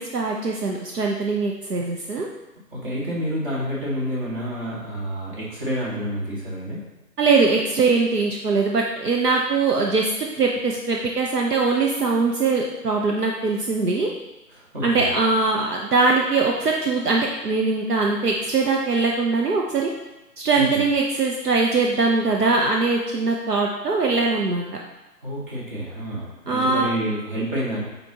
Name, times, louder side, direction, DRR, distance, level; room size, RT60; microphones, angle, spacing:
voice 1, 0.0-2.3 7.2-10.1 10.4-14.1 14.8-19.9 20.4-24.6 26.5-26.9, right 3 dB, 70° right, 0 dB, 0.9 m, -21 dB
voice 2, 2.7-6.8 14.5-15.1 20.6-20.7 25.2-27.8, equal, 30° right, -6 dB, 1.9 m, -29 dB
7.9 x 4.3 x 2.9 m, 1.0 s
figure-of-eight pair, 145°, 49 cm